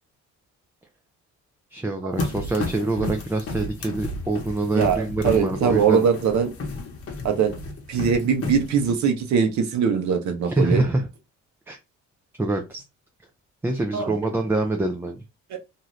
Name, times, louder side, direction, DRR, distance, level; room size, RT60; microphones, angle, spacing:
voice 1, 1.7-6.1 10.4-11.1 11.7-11.8 12.4-12.8 13.6-15.2, right 2 dB, 10° right, 0.4 m, -25 dB
sound 1, 2.2-9.0, left 2 dB, 50° left, 1.0 m, -33 dB
voice 2, 4.7-6.5 7.2-7.5 7.9-10.8 13.9-14.1 15.5-15.6, right 6 dB, 70° right, 0.8 m, -21 dB
2.7 x 2.5 x 3.1 m
cardioid pair, 90°, 30 cm